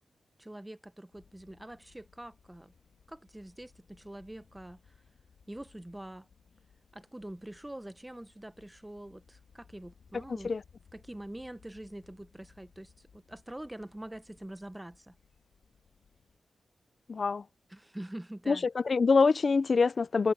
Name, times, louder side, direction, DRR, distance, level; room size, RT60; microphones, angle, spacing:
voice 1, 0.4-2.7 3.1-4.8 5.5-6.3 6.9-10.5 10.9-15.1 17.7-18.7, right 1 dB, 15° right, 1.0 m, -45 dB
sound 1, 1.1-16.4, left 6 dB, 85° left, 3.2 m, -63 dB
voice 2, 10.3-10.6 17.1-17.4 18.5-20.3, left 4 dB, 55° left, 0.5 m, -25 dB
cardioid pair, 65°, 0 cm